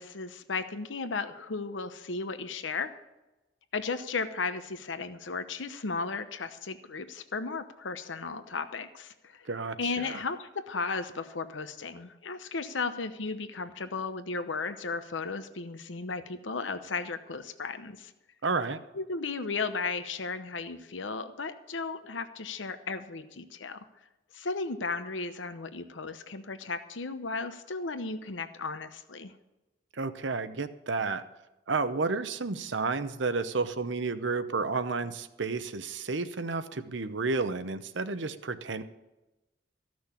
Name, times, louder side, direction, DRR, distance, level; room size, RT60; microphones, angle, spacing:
voice 1, 0.0-2.9 3.7-9.5 9.8-18.1 18.9-23.8 24.3-29.3, left 4 dB, 90° left, 10 dB, 0.9 m, -35 dB
voice 2, 9.5-10.2 18.4-18.8 29.9-31.2 31.7-38.8, right 4 dB, 75° right, 11 dB, 0.8 m, -31 dB
15.0 x 6.3 x 8.4 m, 1.0 s
head